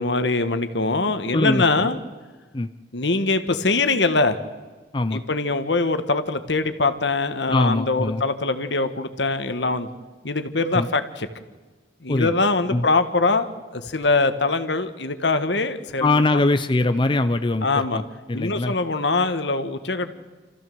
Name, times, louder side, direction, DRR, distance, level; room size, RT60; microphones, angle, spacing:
voice 1, 0.0-2.0 2.9-4.4 5.1-9.9 10.2-11.3 12.0-13.5 13.7-16.4 17.6-18.0 18.3-20.1, left 3 dB, 70° left, 10 dB, 1.5 m, -23 dB
voice 2, 1.3-1.9 2.5-2.7 4.9-5.2 7.5-8.2 10.7-10.9 12.1-12.3 12.7-12.9 16.0-18.7, left 2 dB, 25° left, 9 dB, 0.6 m, -22 dB
27.5 x 15.0 x 7.8 m, 1.3 s
head